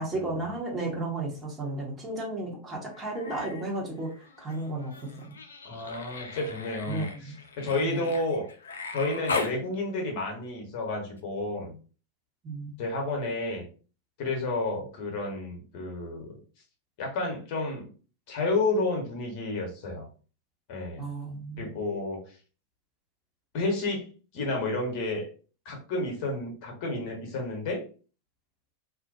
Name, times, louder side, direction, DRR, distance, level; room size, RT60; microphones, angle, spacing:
voice 1, 0.0-4.1 4.4-5.4 6.9-7.4 7.8-8.0 12.4-12.8 21.0-21.7, right 2 dB, 20° right, -2 dB, 0.8 m, -33 dB
Human voice, 2.9-3.7 4.0-9.6 11.2-11.3, left 4 dB, 65° left, 0.4 m, -38 dB
voice 2, 5.6-8.5 8.9-11.8 12.8-13.7 14.2-16.4 17.0-17.9 18.3-20.1 20.7-21.0 21.6-22.2 23.5-24.1 24.3-25.3 25.6-27.9, left 2 dB, 45° left, 2 dB, 0.8 m, -31 dB
2.4 x 2.1 x 2.6 m, 0.38 s
figure-of-eight pair, 90°, 0 cm